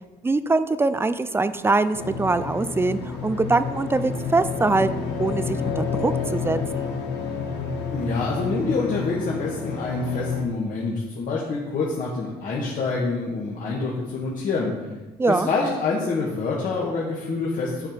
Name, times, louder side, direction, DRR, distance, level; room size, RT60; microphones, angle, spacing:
voice 1, 0.2-4.9 5.2-6.9 15.2-15.5, right 3 dB, 15° right, 13 dB, 0.4 m, -23 dB
sound 1, 1.9-10.4, left 5 dB, 80° left, 1.6 m, -29 dB
voice 2, 7.9-14.7 15.3-17.9, left 3 dB, 50° left, -5 dB, 1.6 m, -26 dB
8.9 x 4.6 x 5.1 m, 1.2 s
cardioid pair, 110°, 17 cm